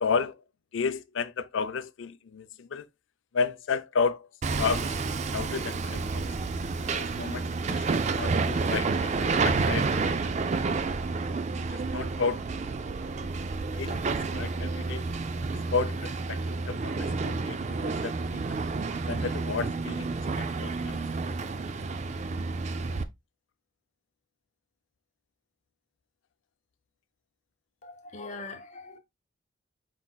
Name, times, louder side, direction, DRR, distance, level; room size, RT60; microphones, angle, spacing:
voice 1, 0.0-0.4 0.7-2.9 3.3-4.3 4.6-5.0 5.3-6.2 6.8-10.3 11.7-12.5 13.7-15.1 15.5-18.6 19.1-21.2, left 5 dB, 80° left, 0.4 m, -33 dB
Hammer, 4.4-23.0, right 4 dB, 35° right, 0.4 m, -30 dB
voice 2, 27.8-29.0, left 3 dB, 40° left, 0.9 m, -41 dB
4.7 x 4.0 x 2.2 m
head